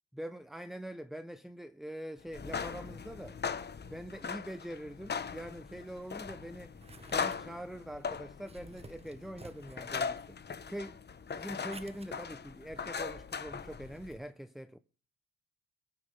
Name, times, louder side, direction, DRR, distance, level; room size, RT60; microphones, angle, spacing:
voice 1, 0.1-3.4 3.8-6.7 7.1-10.4 10.7-11.0 11.4-14.8, equal, ahead, 0.7 m, -44 dB
sound 1, 2.3-14.2, left 6 dB, 35° left, 1.1 m, -40 dB
sound 2, 6.0-14.2, right 3 dB, 20° right, 1.3 m, -56 dB
23.5 x 9.4 x 3.5 m
cardioid pair, 90°, 30 cm